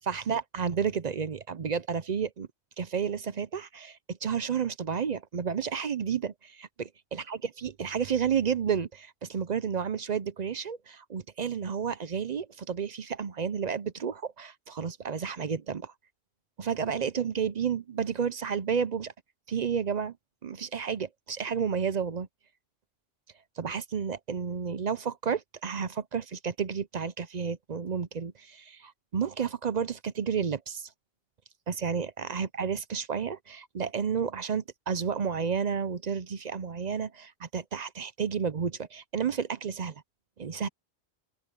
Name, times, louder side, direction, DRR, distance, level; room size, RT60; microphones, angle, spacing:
voice 1, 0.1-2.5 2.8-15.9 16.6-19.1 19.5-20.2 20.4-22.3 23.6-30.9 31.7-40.0 40.4-40.7, right 6 dB, 45° right, 0.6 m, -31 dB
open air
omnidirectional pair, 1.2 m